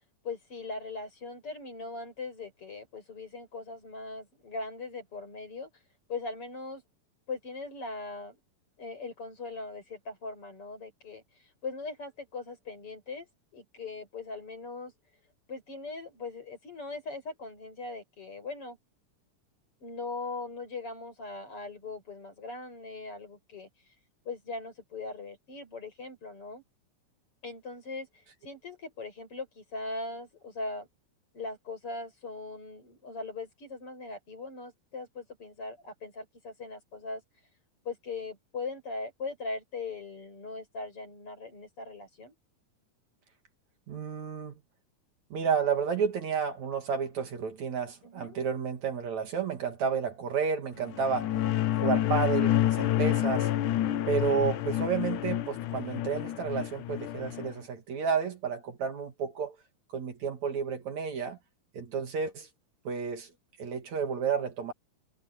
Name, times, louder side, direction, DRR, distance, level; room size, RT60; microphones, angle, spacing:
voice 1, 0.2-5.7 6.1-6.8 7.3-8.4 8.8-11.2 11.6-14.9 15.5-18.8 19.8-23.7 24.3-26.6 27.4-30.9 31.3-37.2 37.9-42.4 48.0-48.4 51.3-51.6, left 3 dB, 40° left, 7.6 m, -40 dB
voice 2, 43.9-44.6 45.3-51.3 51.8-53.5 54.1-59.6 59.9-61.4 61.7-62.5 62.9-63.3 63.6-64.7, right 6 dB, 60° right, 3.6 m, -31 dB
sound 1, 50.8-57.5, left 13 dB, 75° left, 2.4 m, -28 dB
omnidirectional pair, 3.7 m